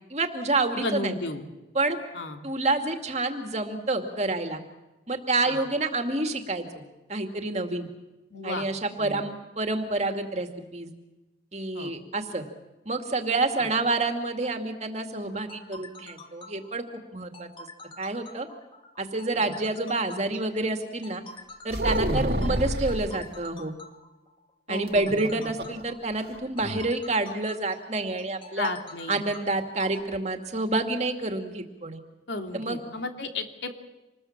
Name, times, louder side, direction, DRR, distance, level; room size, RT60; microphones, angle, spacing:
voice 1, 0.1-1.1 1.7-2.0 2.4-4.6 5.1-6.7 7.1-7.9 8.4-10.9 11.5-12.4 12.9-17.7 18.0-18.5 19.0-21.2 21.6-23.7 24.7-28.7 29.1-32.0 32.5-32.8, right 2 dB, 35° right, 5 dB, 2.3 m, -28 dB
voice 2, 0.7-1.4 2.1-2.4 5.5-5.6 8.3-8.7 9.0-9.2 11.7-11.9 13.6-13.7 19.4-19.5 24.7-25.4 28.6-29.2 32.3-33.7, left 2 dB, 75° left, 4 dB, 2.9 m, -34 dB
sound 1, 15.2-30.0, left 2 dB, 25° left, 2.2 m, -47 dB
sound 2, 21.7-23.1 24.9-25.8 26.1-26.2 26.6-26.9, right 1 dB, 55° right, 2.2 m, -28 dB
27.0 x 21.0 x 7.4 m, 1.1 s
head